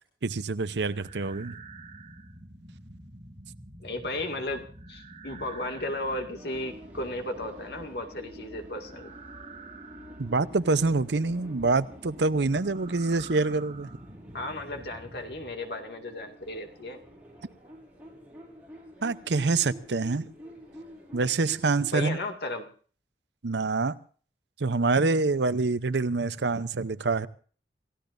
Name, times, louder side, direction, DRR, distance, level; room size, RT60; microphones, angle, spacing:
voice 1, 0.2-1.5 10.2-13.9 19.0-20.3 21.1-22.2 23.4-24.0 24.6-27.3, right 3 dB, 80° right, 14 dB, 0.7 m, -26 dB
sound 1, 0.6-15.5, right 2 dB, 40° right, 2.3 m, -47 dB
voice 2, 3.8-9.1 14.3-17.0 21.9-22.7, left 1 dB, 65° left, 4 dB, 2.2 m, -35 dB
sound 2, 6.3-22.3, equal, 10° right, 5.6 m, -50 dB
28.5 x 15.0 x 2.6 m, 0.42 s
head